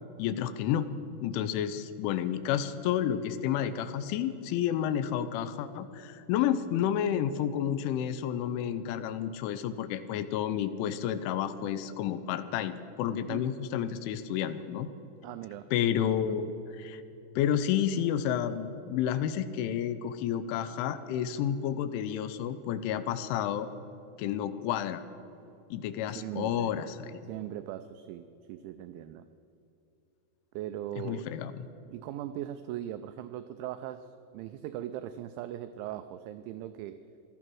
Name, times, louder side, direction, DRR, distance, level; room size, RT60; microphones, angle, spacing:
voice 1, 0.2-0.9 1.2-14.9 15.7-17.0 17.4-23.7 24.2-25.0 25.7-27.3 31.0-31.5, left 9 dB, 80° left, 12 dB, 2.9 m, -30 dB
voice 2, 15.2-15.7 26.1-26.7 27.3-29.2 30.5-31.2 31.9-34.1 34.3-37.0, right 12 dB, 90° right, 11 dB, 2.6 m, -39 dB
17.5 x 12.5 x 6.1 m, 2.8 s
omnidirectional pair, 5.9 m